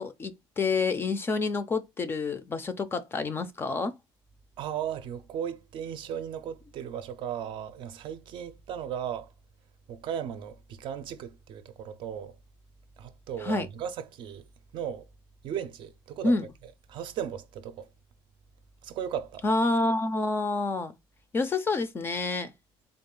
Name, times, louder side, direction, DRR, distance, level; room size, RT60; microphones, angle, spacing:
voice 1, 0.0-3.9 13.4-13.7 16.2-16.5 19.4-20.9 21.3-22.5, left 3 dB, 20° left, 0.4 m, -28 dB
voice 2, 4.6-9.3 9.9-12.4 13.0-14.5 14.7-15.0 15.4-16.4 16.9-17.9 18.8-19.4, right 9 dB, 50° right, 0.5 m, -36 dB
3.7 x 2.3 x 3.7 m
cardioid pair, 145°, 10 cm